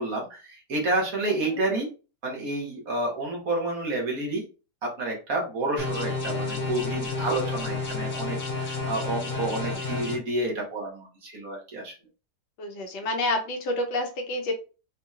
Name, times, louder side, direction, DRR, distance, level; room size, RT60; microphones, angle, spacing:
voice 1, 0.0-1.9 2.2-4.4 4.8-11.9, right 2 dB, 60° right, -1 dB, 1.6 m, -29 dB
sound 1, 5.8-10.2, left 4 dB, 70° left, 1.5 m, -30 dB
voice 2, 9.4-10.2 12.6-14.5, left 2 dB, 90° left, 4 dB, 1.4 m, -30 dB
4.3 x 2.9 x 2.4 m, 0.33 s
omnidirectional pair, 1.8 m